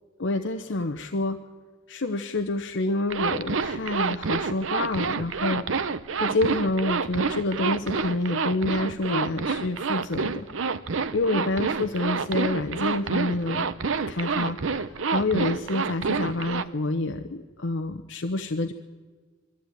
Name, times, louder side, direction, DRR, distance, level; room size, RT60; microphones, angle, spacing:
voice 1, 0.2-1.4 1.9-5.6 6.2-10.5 11.1-13.7 14.1-18.7, left 2 dB, 70° left, 5 dB, 0.8 m, -28 dB
Zipper (clothing), 3.1-16.6, right 5 dB, 85° right, 0.8 m, -28 dB
22.5 x 14.5 x 9.1 m, 1.4 s
head